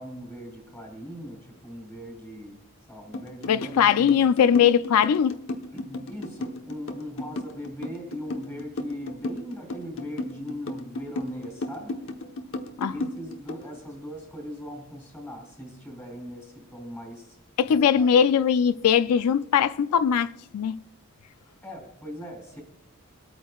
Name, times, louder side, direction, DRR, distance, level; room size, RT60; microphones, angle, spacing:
voice 1, 0.0-2.6 2.9-4.2 5.7-12.1 12.9-17.4 17.7-18.1 21.6-22.6, equal, 10° left, 3.0 m, -40 dB
sound 1, 3.1-13.7, left 2 dB, 60° left, 1.0 m, -34 dB
voice 2, 3.5-5.4 12.8-12.9 17.6-20.8, left 8 dB, 85° left, 0.4 m, -21 dB
26.5 x 8.9 x 2.3 m
head